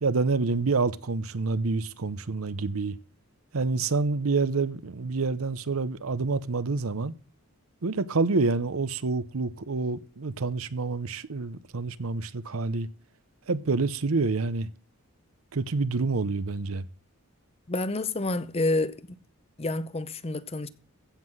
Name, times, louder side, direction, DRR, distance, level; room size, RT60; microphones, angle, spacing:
voice 1, 0.0-3.0 3.5-7.1 7.8-12.9 13.5-14.7 15.5-16.9, right 3 dB, 80° right, 0.8 m, -27 dB
voice 2, 17.7-19.0 19.6-20.7, left 2 dB, 30° left, 0.7 m, -28 dB
15.5 x 5.7 x 7.7 m
head